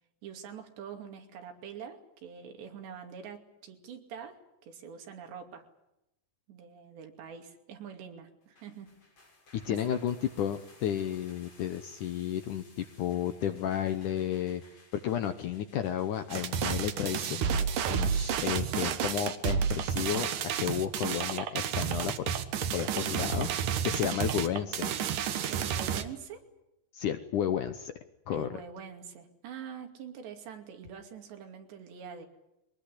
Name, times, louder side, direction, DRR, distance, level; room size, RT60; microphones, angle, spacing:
voice 1, 0.2-5.6 6.5-8.9 9.7-9.8 25.5-26.4 28.3-32.3, right 7 dB, 90° right, 5 dB, 4.8 m, -45 dB
sound 1, 8.4-18.1, left 2 dB, 40° left, 6.7 m, -59 dB
voice 2, 9.5-14.6 14.9-20.3 20.6-22.3 22.7-24.9 26.9-27.9 28.3-28.5, left 10 dB, 70° left, 9 dB, 1.9 m, -32 dB
sound 2, 16.3-26.0, right 8 dB, 60° right, 2.5 m, -31 dB
23.0 x 19.5 x 9.9 m, 0.87 s
omnidirectional pair, 4.8 m